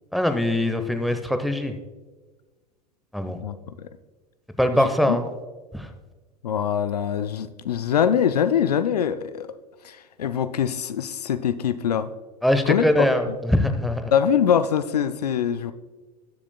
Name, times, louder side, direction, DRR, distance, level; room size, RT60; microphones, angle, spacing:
voice 1, 0.1-1.8 3.1-3.4 4.6-5.2 5.7-5.9 12.4-14.1, left 1 dB, ahead, 7 dB, 0.8 m, -22 dB
voice 2, 3.4-3.9 5.1-5.2 6.4-9.5 9.8-12.1 12.7-13.1 14.1-15.7, left 8 dB, 70° left, 12 dB, 0.5 m, -23 dB
20.0 x 7.2 x 2.2 m, 1.3 s
figure-of-eight pair, 80°, 21 cm